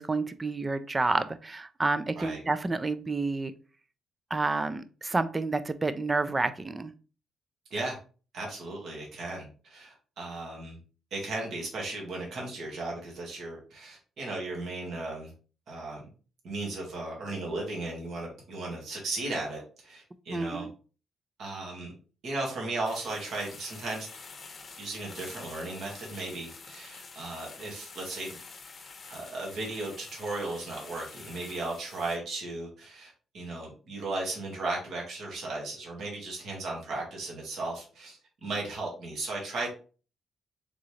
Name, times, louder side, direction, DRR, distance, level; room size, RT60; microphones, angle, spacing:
voice 1, 0.0-3.5 4.3-6.9 20.3-20.7, right 3 dB, 25° right, 12 dB, 0.4 m, -29 dB
voice 2, 8.3-10.8 11.1-15.3 15.7-16.0 16.4-20.7 21.4-21.9 22.2-24.1 24.8-28.3 29.1-39.7, right 2 dB, 65° right, -2 dB, 1.9 m, -36 dB
sound 1, 22.8-32.2, left 4 dB, 40° left, 0.8 m, -47 dB
3.9 x 3.7 x 3.2 m, 0.37 s
cardioid pair, 90°, 0 cm